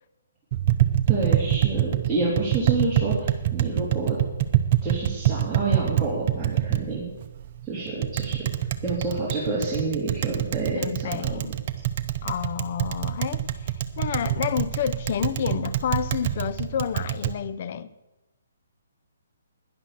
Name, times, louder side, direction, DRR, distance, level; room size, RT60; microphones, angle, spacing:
Tap, 0.5-17.3, right 12 dB, 45° right, 0.9 m, -26 dB
voice 1, 1.1-4.2 4.8-7.0 7.7-8.5 8.8-11.4, right 3 dB, 5° right, 3.1 m, -28 dB
voice 2, 10.7-11.6 12.2-17.9, left 8 dB, 50° left, 0.6 m, -29 dB
11.0 x 10.5 x 6.8 m
hypercardioid pair, 145°, 0 cm